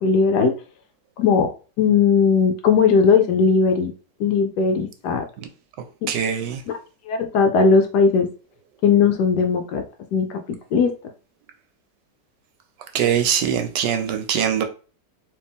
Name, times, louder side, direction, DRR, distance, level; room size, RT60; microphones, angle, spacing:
voice 1, 0.0-0.5 1.2-1.5 1.8-3.9 4.2-5.2 6.0-6.1 7.1-8.3 8.8-9.8 10.1-10.4 10.7-10.9, left 5 dB, 70° left, 1.1 m, -18 dB
voice 2, 6.1-6.6 12.9-14.6, right 8 dB, 75° right, 1.2 m, -22 dB
4.3 x 2.9 x 3.5 m
omnidirectional pair, 2.0 m